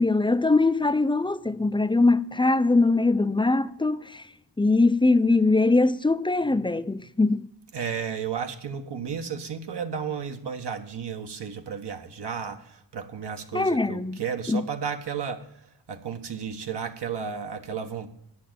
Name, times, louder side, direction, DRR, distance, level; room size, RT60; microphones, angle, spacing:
voice 1, 0.0-4.2 4.6-7.5 13.5-14.2 14.5-14.6, left 3 dB, 10° left, 0.4 m, -22 dB
voice 2, 7.7-15.5 15.9-18.1, right 7 dB, 70° right, 1.2 m, -33 dB
8.7 x 6.4 x 8.5 m
cardioid pair, 70°, 43 cm